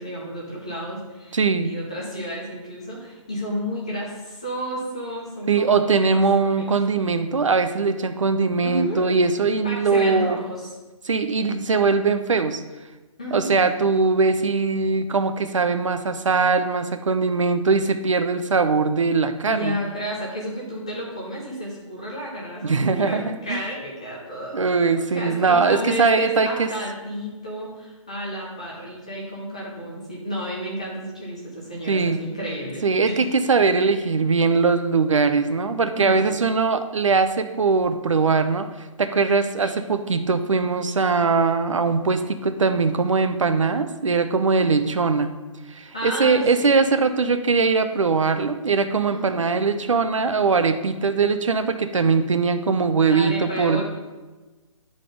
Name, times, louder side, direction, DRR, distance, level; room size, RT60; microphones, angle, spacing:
voice 1, 0.0-6.2 6.6-6.7 8.6-9.0 9.6-10.7 13.2-13.6 19.4-24.8 25.1-33.2 36.0-36.3 39.6-39.7 45.9-46.7 49.1-49.5 53.1-53.8, equal, 10° left, -4 dB, 0.5 m, -31 dB
voice 2, 1.3-1.7 5.5-10.4 11.0-12.6 13.3-19.8 22.6-23.6 24.5-26.7 31.9-32.2 32.8-45.3 45.7-53.8, right 4 dB, 60° right, 9 dB, 0.7 m, -21 dB
10.0 x 4.1 x 5.0 m, 1.2 s
hypercardioid pair, 180°, 18 cm